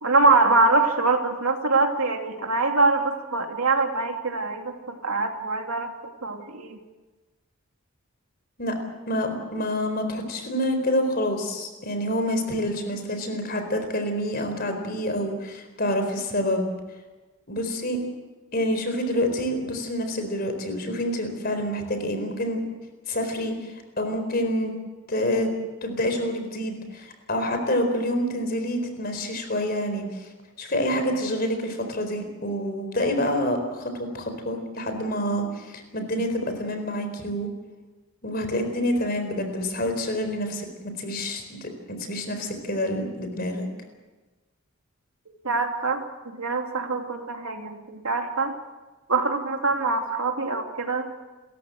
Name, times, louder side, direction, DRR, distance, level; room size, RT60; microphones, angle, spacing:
voice 1, 0.0-5.9 6.2-6.8 45.4-48.5 49.1-51.1, right 3 dB, 85° right, 4 dB, 2.8 m, -24 dB
voice 2, 9.1-16.7 17.5-18.0 18.5-22.6 23.1-24.7 25.1-25.5 25.8-30.3 30.6-37.5 38.2-40.7 41.0-41.7 42.1-43.7, left 1 dB, 45° left, 6 dB, 4.2 m, -27 dB
30.0 x 14.5 x 7.7 m, 1.2 s
head